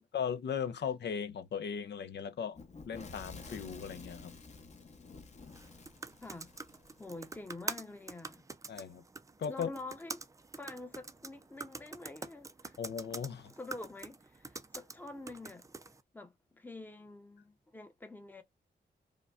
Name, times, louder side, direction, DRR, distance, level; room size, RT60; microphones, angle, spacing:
voice 1, 0.1-2.6 2.9-4.3 8.7-9.0 9.4-9.7 12.8-13.5, left 7 dB, 70° left, 0.5 m, -37 dB
Fire / Explosion, 2.5-7.4, left 3 dB, 40° left, 0.9 m, -51 dB
sound 1, 5.5-16.0, right 3 dB, 15° right, 0.4 m, -46 dB
voice 2, 7.0-8.4 9.5-10.2 10.6-12.8 13.6-15.7 16.1-18.4, left 2 dB, 10° left, 0.7 m, -47 dB
5.0 x 2.2 x 2.4 m
wide cardioid pair, 105°, 18 cm